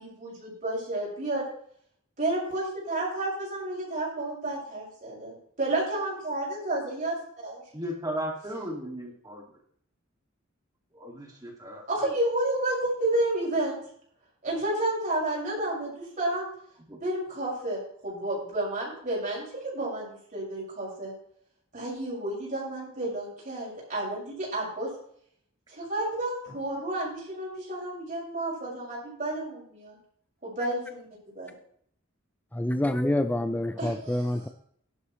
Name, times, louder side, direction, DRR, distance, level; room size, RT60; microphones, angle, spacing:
voice 1, 0.0-1.4 2.2-7.6 11.9-13.8 14.4-16.5 17.0-21.1 21.7-24.9 25.7-30.0 30.4-31.1 31.3-31.5 33.8-34.2, right 1 dB, 40° right, -5 dB, 6.0 m, -31 dB
voice 2, 7.7-9.6 10.9-11.8 16.9-17.0, equal, 20° right, -1 dB, 2.2 m, -36 dB
voice 3, 32.5-34.5, left 1 dB, 10° left, 9 dB, 0.4 m, -27 dB
13.0 x 11.0 x 3.1 m, 0.64 s
head